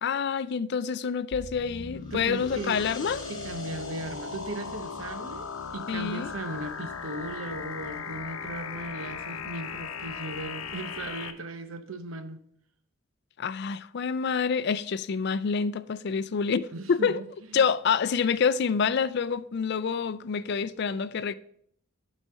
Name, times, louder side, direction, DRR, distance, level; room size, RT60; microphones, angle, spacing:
voice 1, 0.0-3.3 5.9-6.3 13.4-17.2 17.5-21.3, left 6 dB, 55° left, 0.4 m, -27 dB
sound 1, 1.3-11.3, left 5 dB, 90° left, 0.8 m, -38 dB
sound 2, 1.9-7.3, left 3 dB, 20° left, 1.8 m, -48 dB
voice 2, 2.1-2.9 3.3-12.4 16.7-17.2 17.5-17.6, right 2 dB, 80° right, 0.9 m, -37 dB
9.0 x 4.2 x 6.3 m
head